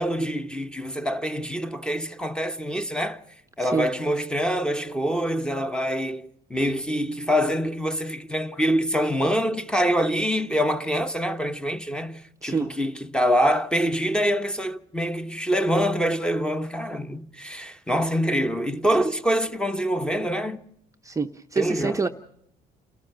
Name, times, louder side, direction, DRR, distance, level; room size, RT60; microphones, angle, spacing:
voice 1, 0.0-3.2 3.6-20.6 21.6-22.0, equal, 5° left, 1.1 m, -25 dB
voice 2, 3.6-3.9 12.4-12.7 21.0-22.1, right 4 dB, 20° right, 0.7 m, -26 dB
28.5 x 14.0 x 6.8 m
cardioid pair, 110°, 17 cm